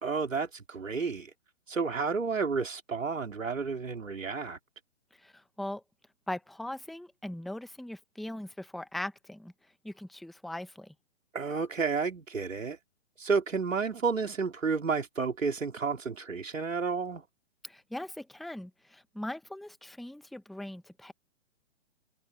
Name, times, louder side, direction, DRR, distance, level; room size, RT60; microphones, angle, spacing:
voice 1, 0.0-1.3 1.7-4.6 11.3-12.8 13.2-17.2, right 5 dB, 80° right, 3.9 m, -31 dB
voice 2, 5.1-5.8 6.3-9.5 9.8-10.9 17.6-21.1, left 1 dB, ahead, 0.9 m, -40 dB
figure-of-eight pair, 135°, 39 cm